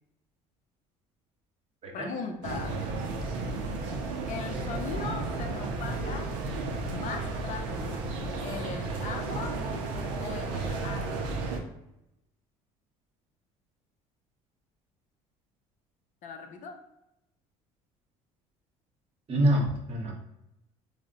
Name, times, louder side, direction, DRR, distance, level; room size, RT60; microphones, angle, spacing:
voice 1, 1.9-2.8 4.3-6.4 6.8-8.1 8.4-9.6 10.2-11.5 16.2-16.9, left 5 dB, 55° left, 4 dB, 0.5 m, -39 dB
sound 1, 2.4-11.6, right 3 dB, 85° right, 0.5 m, -33 dB
voice 2, 19.3-20.1, right 1 dB, 40° right, 0 dB, 1.0 m, -26 dB
3.5 x 2.1 x 2.5 m, 0.86 s
supercardioid pair, 80°, 16 cm